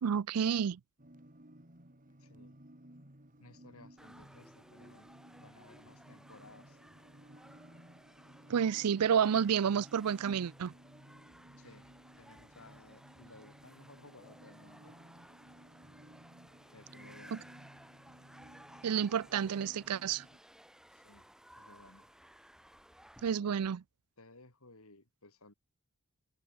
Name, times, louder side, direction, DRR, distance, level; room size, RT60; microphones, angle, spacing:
voice 1, 0.0-0.8 8.5-10.7 17.3-17.4 18.8-20.2 23.2-23.8, right 7 dB, 85° right, 0.4 m, -30 dB
sound 1, 1.0-20.4, right 1 dB, 40° right, 3.6 m, -57 dB
voice 2, 2.2-2.6 3.4-5.1 5.4-6.8 11.5-15.0 16.7-17.5 20.9-21.3 21.6-22.1 23.2-23.6 24.2-25.5, left 2 dB, 70° left, 4.0 m, -58 dB
sound 2, 4.0-23.3, equal, 5° right, 5.9 m, -58 dB
head